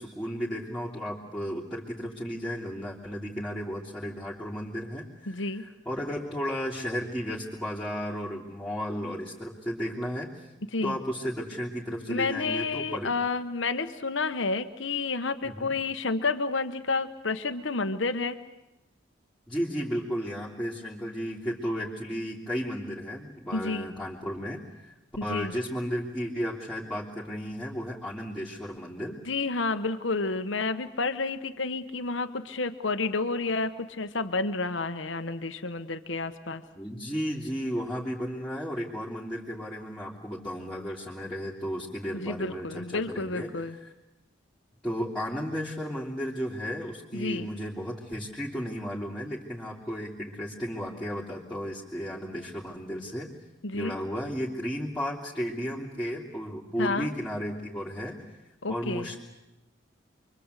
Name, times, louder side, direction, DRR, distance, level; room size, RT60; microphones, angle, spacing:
voice 1, 0.0-10.3 10.8-13.1 15.4-15.7 19.5-24.9 25.2-29.2 36.7-43.9 44.8-53.3 53.7-58.2 58.7-59.2, equal, 5° left, -7 dB, 3.1 m, -34 dB
voice 2, 5.3-5.6 10.7-11.0 12.1-18.4 23.5-23.9 25.2-25.5 29.2-36.6 42.1-43.7 47.1-47.5 53.6-53.9 56.8-57.1 58.6-59.1, left 3 dB, 70° left, 8 dB, 1.2 m, -30 dB
28.5 x 23.5 x 8.3 m, 0.93 s
head